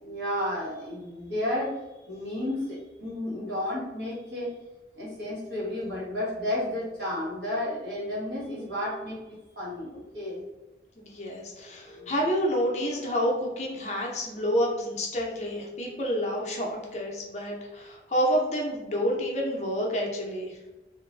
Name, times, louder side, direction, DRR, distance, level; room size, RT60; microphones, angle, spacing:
voice 1, 0.0-4.5 5.0-9.2 9.5-10.5 11.7-12.3, left 1 dB, 65° right, -6 dB, 1.3 m, -32 dB
voice 2, 11.0-20.6, equal, 40° left, -2 dB, 0.6 m, -29 dB
2.6 x 2.5 x 3.2 m, 1.0 s
head